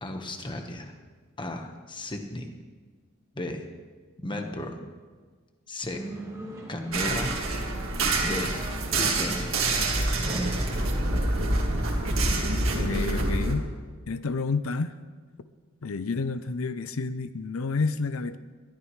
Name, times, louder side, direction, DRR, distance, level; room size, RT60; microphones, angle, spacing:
voice 1, 0.0-0.9 1.4-2.5 3.3-3.6 4.2-4.7 5.7-6.0 6.7-7.3 8.2-8.5 9.0-9.4, left 1 dB, 25° left, 4 dB, 1.3 m, -34 dB
sound 1, 5.9-11.2, right 1 dB, 15° right, 2.1 m, -38 dB
sound 2, 6.9-13.5, right 2 dB, 70° right, 1.9 m, -26 dB
voice 2, 12.7-13.7 14.1-14.9 15.8-18.4, left 4 dB, 80° left, 13 dB, 0.6 m, -29 dB
20.5 x 13.0 x 3.2 m, 1.5 s
head